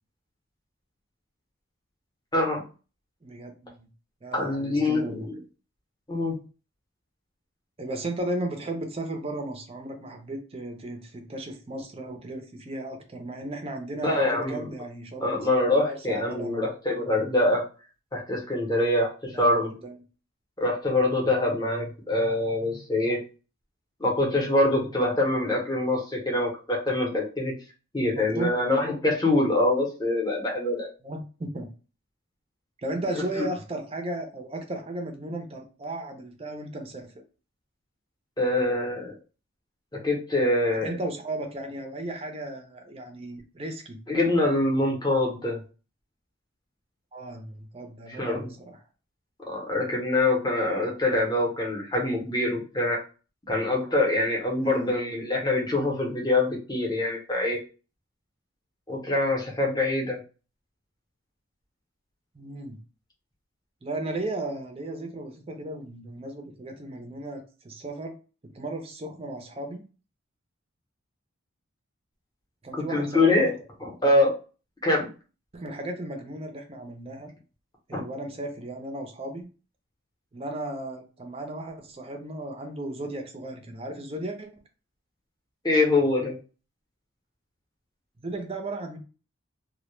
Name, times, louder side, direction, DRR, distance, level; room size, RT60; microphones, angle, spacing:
voice 1, 2.3-2.6 4.3-5.3 6.1-6.4 14.0-14.6 15.2-17.6 18.1-19.7 20.6-23.2 24.0-27.5 27.9-30.9 33.4-33.5 38.4-39.1 40.0-41.0 44.1-45.6 48.1-48.5 49.5-53.0 53.5-57.6 58.9-60.2 72.7-73.5 73.8-74.3 74.8-75.1 77.9-78.0 85.6-86.4, left 2 dB, 20° left, -2 dB, 0.7 m, -24 dB
voice 2, 3.2-3.9 4.2-5.3 7.8-15.4 15.9-16.6 19.3-20.0 28.3-28.5 31.0-31.7 32.8-37.1 40.8-44.0 47.1-48.8 54.6-55.0 62.3-62.8 63.8-68.2 68.4-69.8 72.6-73.5 75.5-77.3 77.9-79.5 80.3-84.5 88.2-89.0, right 1 dB, 25° right, 4 dB, 0.4 m, -35 dB
2.1 x 2.0 x 3.0 m, 0.34 s
head